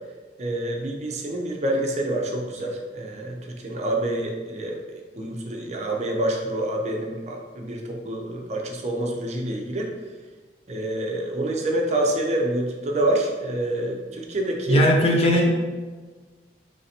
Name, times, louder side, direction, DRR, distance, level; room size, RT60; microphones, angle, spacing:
voice 1, 0.4-9.9 10.7-14.8, right 1 dB, 40° right, 1 dB, 0.5 m, -27 dB
voice 2, 14.7-15.5, equal, 35° left, 0 dB, 0.6 m, -18 dB
5.5 x 3.2 x 2.8 m, 1.4 s
head